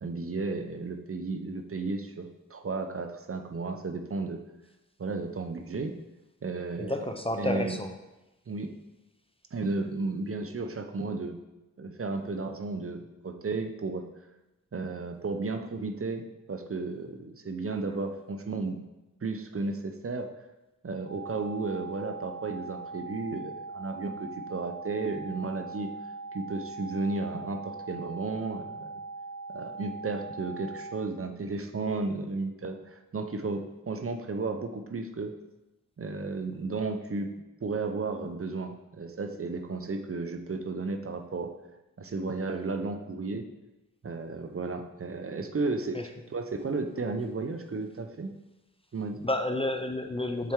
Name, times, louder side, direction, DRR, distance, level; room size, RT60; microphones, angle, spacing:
voice 1, 0.0-4.4 5.0-5.9 6.4-7.1 7.4-7.8 8.5-8.7 9.5-11.4 11.8-14.0 14.7-18.8 19.2-20.3 20.8-25.9 26.3-29.0 29.5-35.3 36.0-37.3 37.6-41.5 42.0-43.4 44.0-48.4 48.9-49.2, right 3 dB, 45° right, 5 dB, 0.6 m, -33 dB
voice 2, 6.8-7.9 45.9-46.0 49.2-50.5, left 1 dB, 20° left, 6 dB, 0.5 m, -30 dB
sound 1, 21.1-31.1, right 3 dB, 70° right, 1.5 m, -41 dB
7.4 x 4.4 x 3.6 m, 1.0 s
wide cardioid pair, 65°, 32 cm